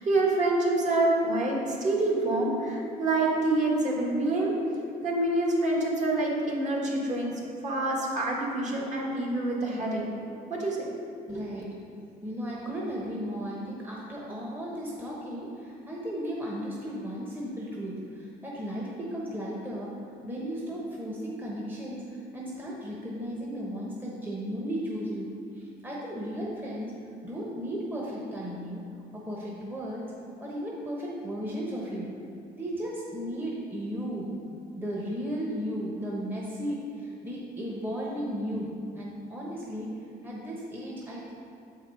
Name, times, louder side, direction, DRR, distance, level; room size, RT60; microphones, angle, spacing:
voice 1, 0.0-4.5 5.0-7.3 7.6-10.0 10.5-10.9 11.3-11.4, right 2 dB, 45° right, -3 dB, 1.7 m, -26 dB
voice 2, 11.3-11.7 12.2-20.0 20.2-25.3 25.5-26.9 27.2-28.8 29.1-30.1 30.4-32.1 32.6-34.3 34.8-38.7 39.0-39.9 40.2-41.3, equal, 10° right, -4 dB, 1.1 m, -35 dB
7.5 x 4.8 x 4.8 m, 2.6 s
cardioid pair, 110°, 17 cm